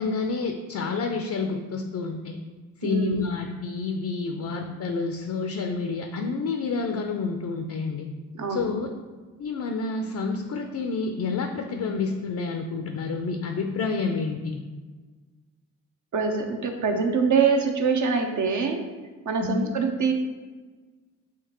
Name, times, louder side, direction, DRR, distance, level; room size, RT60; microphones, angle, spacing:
voice 1, 0.0-2.4 2.8-8.1 8.5-8.9 9.4-14.6 19.4-19.7, left 4 dB, 45° left, 4 dB, 0.6 m, -29 dB
voice 2, 2.8-3.2 8.3-8.7 16.1-18.8 19.2-20.1, right 5 dB, 45° right, 4 dB, 0.8 m, -24 dB
5.8 x 2.8 x 3.0 m, 1.4 s
hypercardioid pair, 45°, 40 cm